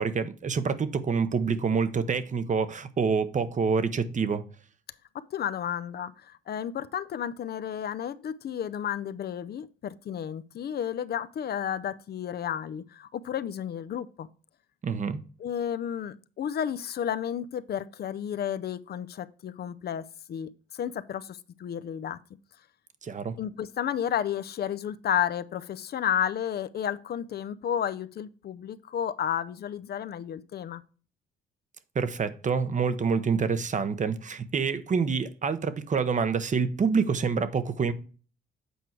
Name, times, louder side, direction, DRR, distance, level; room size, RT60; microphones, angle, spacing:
voice 1, 0.0-4.4 14.8-15.2 23.0-23.4 31.9-37.9, right 5 dB, 40° right, 0.8 m, -27 dB
voice 2, 5.1-14.3 15.4-22.2 23.4-30.8, left 9 dB, 55° left, 0.5 m, -32 dB
8.2 x 4.5 x 4.5 m
cardioid pair, 90°, 20 cm